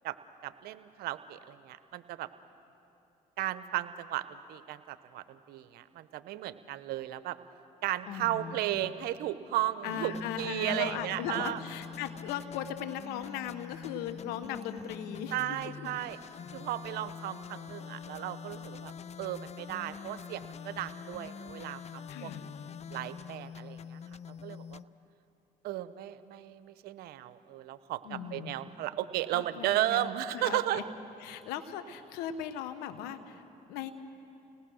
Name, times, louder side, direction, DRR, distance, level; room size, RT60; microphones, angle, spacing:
voice 1, 0.4-2.3 3.4-7.4 7.8-11.6 15.3-16.2 16.5-18.9 19.2-22.3 22.9-24.0 24.4-24.8 25.6-30.8, right 14 dB, 80° right, 14 dB, 0.8 m, -35 dB
voice 2, 8.1-8.9 9.8-15.7 22.1-22.5 28.0-28.6 29.3-30.8 31.2-33.4 33.7-33.9, left 8 dB, 90° left, 10 dB, 1.2 m, -38 dB
sound 1, 9.8-24.8, left 7 dB, 45° left, 0.5 m, -45 dB
29.5 x 19.0 x 6.3 m, 2.9 s
supercardioid pair, 65°, 16 cm